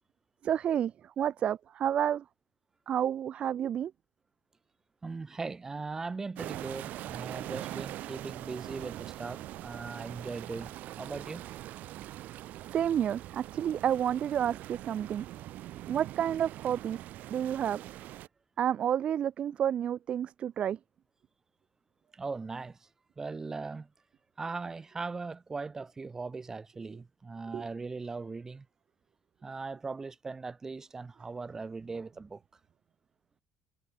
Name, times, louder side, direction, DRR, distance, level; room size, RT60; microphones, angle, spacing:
voice 1, 0.4-2.2 2.9-3.9 12.7-15.3 15.9-17.0 17.3-17.8 18.6-20.8 27.5-27.6, right 9 dB, 30° right, 0.3 m, -30 dB
voice 2, 5.0-11.5 22.1-22.8 23.2-23.9 24.4-28.7 29.4-32.4, right 4 dB, 15° right, 2.3 m, -39 dB
sound 1, 6.4-18.3, right 14 dB, 50° right, 0.9 m, -42 dB
cardioid pair, 170°, 4 cm